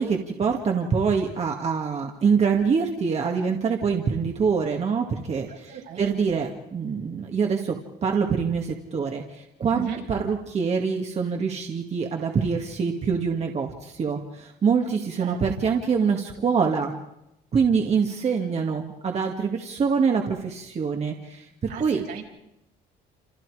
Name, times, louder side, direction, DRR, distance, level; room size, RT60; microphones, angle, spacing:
voice 1, 0.0-16.9 17.5-22.0, right 5 dB, 40° right, 2 dB, 2.2 m, -25 dB
voice 2, 5.5-6.5 9.7-10.0 15.2-15.4 21.7-22.2, right 9 dB, 75° right, 0 dB, 6.2 m, -37 dB
28.5 x 28.0 x 5.0 m, 0.85 s
cardioid pair, 110°, 17 cm